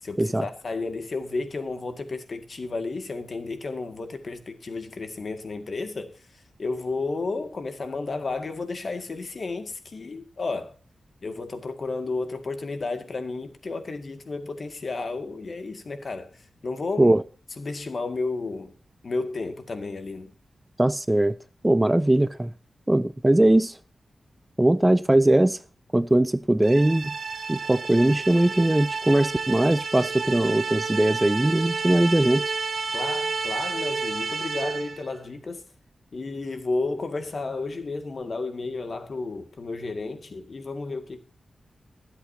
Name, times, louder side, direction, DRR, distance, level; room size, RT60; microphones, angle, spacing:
voice 1, 0.0-6.2 6.6-10.7 11.2-17.2 17.6-18.7 19.0-20.3 32.9-35.7 36.1-41.2, left 3 dB, 55° left, 2.1 m, -32 dB
voice 2, 20.8-21.4 21.6-22.5 22.9-23.8 24.6-25.6 25.9-27.1 27.5-32.5, right 1 dB, 15° right, 0.4 m, -20 dB
sound 1, 26.6-35.1, right 4 dB, 65° right, 1.3 m, -30 dB
23.5 x 8.2 x 2.8 m
wide cardioid pair, 95°, 0 cm